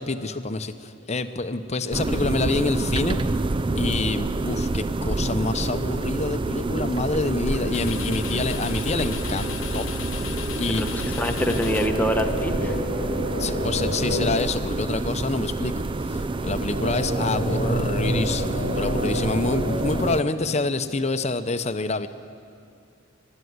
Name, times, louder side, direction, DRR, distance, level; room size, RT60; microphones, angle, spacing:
voice 1, 0.0-3.2 3.7-9.9 10.6-11.0 13.4-15.8 16.1-22.1, left 3 dB, 35° left, 10 dB, 0.8 m, -27 dB
sound 1, 1.9-20.2, right 2 dB, 25° right, 0.4 m, -28 dB
sound 2, 7.5-12.7, left 4 dB, 80° left, 0.9 m, -34 dB
voice 2, 10.7-12.8, equal, 10° left, 5 dB, 1.0 m, -26 dB
sound 3, 11.4-14.3 16.7-20.1, equal, 70° right, 5.4 m, -28 dB
24.0 x 12.5 x 9.5 m, 2.4 s
head